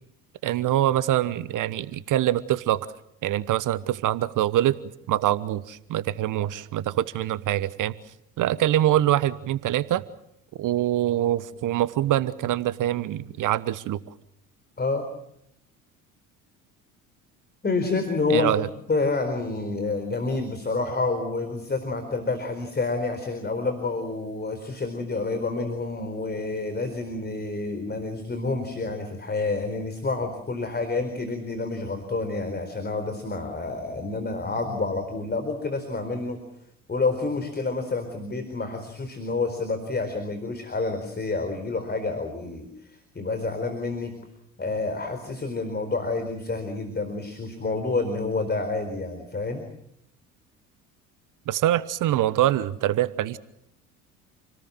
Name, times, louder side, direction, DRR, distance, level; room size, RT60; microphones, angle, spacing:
voice 1, 0.4-2.9 3.2-4.8 5.1-7.9 8.4-10.0 10.6-14.0 18.3-18.7 51.5-53.4, right 13 dB, 45° right, 17 dB, 1.1 m, -24 dB
voice 2, 17.6-18.5 18.9-36.4 36.9-44.2 44.6-49.6, left 3 dB, 20° left, 7 dB, 4.4 m, -28 dB
29.0 x 19.5 x 7.7 m, 0.77 s
figure-of-eight pair, 60°, 44 cm